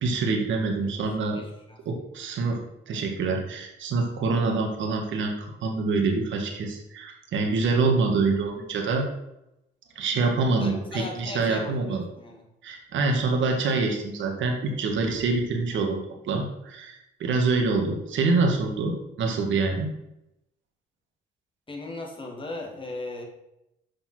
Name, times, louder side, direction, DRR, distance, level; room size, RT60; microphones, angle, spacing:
voice 1, 0.0-1.4 1.8-2.6 2.9-9.0 9.9-12.0 12.6-16.0 16.2-19.9, right 3 dB, 70° right, 1 dB, 1.7 m, -26 dB
voice 2, 1.3-1.8 10.6-12.5 21.7-23.2, left 2 dB, 25° left, 0 dB, 2.4 m, -37 dB
6.8 x 5.4 x 6.0 m, 0.87 s
cardioid pair, 90°, 20 cm